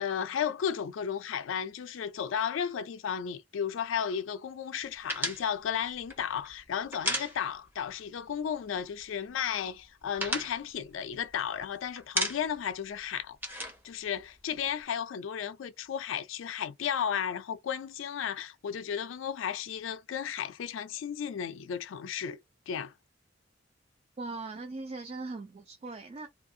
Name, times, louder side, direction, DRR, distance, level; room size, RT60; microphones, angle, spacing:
voice 1, 0.0-13.4 13.8-22.4 22.7-22.9, left 8 dB, 80° left, 0.4 m, -34 dB
sound 1, 5.1-7.9 8.1-8.3 8.6-9.3 9.6-11.6 12.0-12.7 13.0-14.8, equal, 10° right, 0.8 m, -35 dB
voice 2, 24.2-26.3, right 3 dB, 35° right, 0.4 m, -39 dB
2.7 x 2.5 x 2.6 m
head